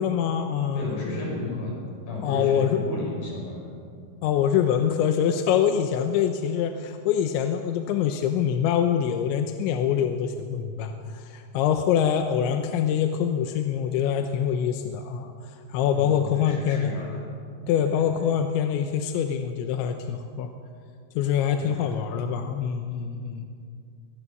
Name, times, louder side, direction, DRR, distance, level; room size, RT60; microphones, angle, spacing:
voice 1, 0.0-0.9 2.2-2.8 4.2-15.3 15.7-16.9 17.7-20.5 21.2-23.5, left 8 dB, 85° left, 6 dB, 3.2 m, -25 dB
voice 2, 0.7-1.8 2.1-3.7 15.9-17.2 17.8-18.1 21.5-22.1, left 2 dB, 50° left, 0 dB, 6.6 m, -33 dB
24.0 x 18.5 x 6.9 m, 2.3 s
omnidirectional pair, 5.4 m